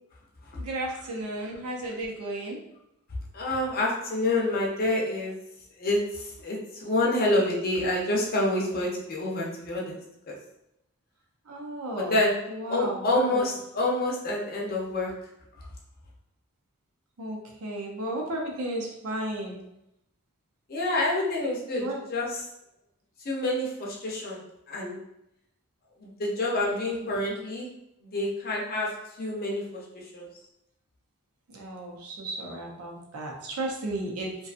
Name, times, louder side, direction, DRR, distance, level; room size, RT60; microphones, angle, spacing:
voice 1, 0.6-2.6 11.5-12.2 12.5-13.5 17.2-19.6 21.8-22.0 27.0-27.3 31.5-34.3, right 1 dB, 85° right, 0 dB, 0.6 m, -34 dB
voice 2, 3.3-5.3 5.8-6.0 6.4-10.0 10.3-10.4 12.0-12.4 12.6-15.1 20.7-21.8 22.1-22.3 23.3-24.4 24.7-25.0 26.2-27.7 28.1-28.9 29.2-29.6 30.1-30.2, left 1 dB, 45° left, -3 dB, 0.6 m, -27 dB
2.6 x 2.3 x 2.4 m, 0.84 s
head